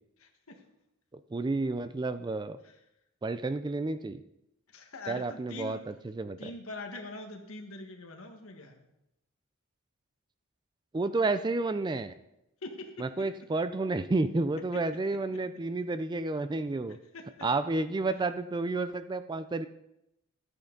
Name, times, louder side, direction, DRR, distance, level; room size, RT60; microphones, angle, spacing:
voice 1, 0.2-0.6 2.6-2.7 4.7-5.8 6.4-8.9 12.6-13.3 16.9-17.2, left 3 dB, 65° left, 4 dB, 1.5 m, -43 dB
voice 2, 1.3-2.6 3.2-4.2 5.1-6.5 10.9-12.1 13.0-17.0 17.4-19.7, right 3 dB, 20° right, 11 dB, 0.3 m, -31 dB
12.5 x 8.8 x 3.9 m, 0.87 s
head